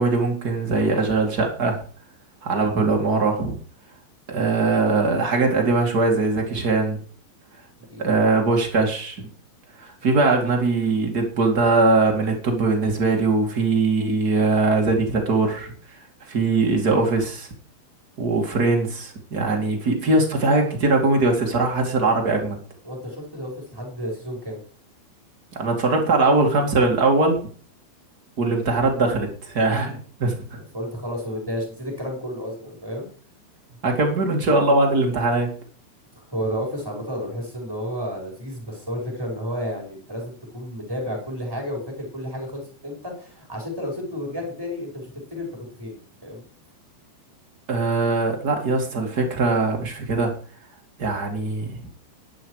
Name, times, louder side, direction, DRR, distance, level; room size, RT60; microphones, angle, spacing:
voice 1, 0.0-1.8 2.4-3.6 4.3-7.0 8.0-9.3 9.8-15.7 16.3-17.5 18.2-22.6 25.5-27.5 28.4-30.6 33.8-35.5 47.7-50.3 51.0-51.9, right 3 dB, 30° right, 1 dB, 1.8 m, -21 dB
voice 2, 22.8-24.6 30.7-33.1 36.3-46.4, equal, 5° right, 0 dB, 4.7 m, -31 dB
12.0 x 11.0 x 4.9 m, 0.44 s
omnidirectional pair, 5.4 m